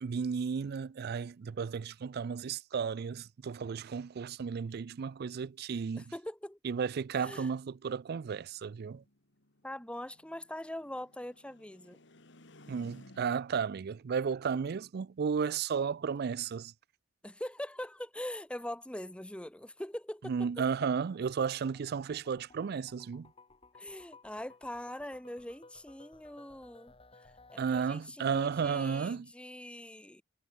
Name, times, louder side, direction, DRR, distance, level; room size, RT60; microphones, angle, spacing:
voice 1, 0.0-6.0 6.6-9.0 12.7-16.7 20.2-23.3 27.6-29.3, right 6 dB, 55° right, 0.4 m, -33 dB
voice 2, 6.0-6.6 7.2-7.5 9.6-12.0 17.2-20.5 23.8-26.9 27.2-30.2, left 1 dB, 5° left, 1.0 m, -42 dB
sound 1, 8.5-13.7, left 1 dB, 65° left, 2.7 m, -59 dB
sound 2, 21.1-27.8, left 3 dB, 30° left, 4.9 m, -59 dB
head